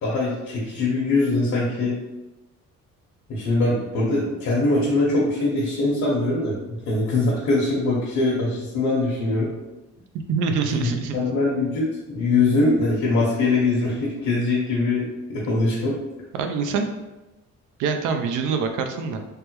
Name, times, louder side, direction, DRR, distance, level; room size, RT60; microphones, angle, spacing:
voice 1, 0.0-2.0 3.3-9.5 10.8-16.0, left 2 dB, 65° left, -6 dB, 0.9 m, -22 dB
voice 2, 10.3-11.2 16.3-16.9 17.8-19.2, right 5 dB, 85° right, 5 dB, 0.5 m, -25 dB
3.4 x 2.1 x 2.9 m, 1.0 s
cardioid pair, 90°, 30 cm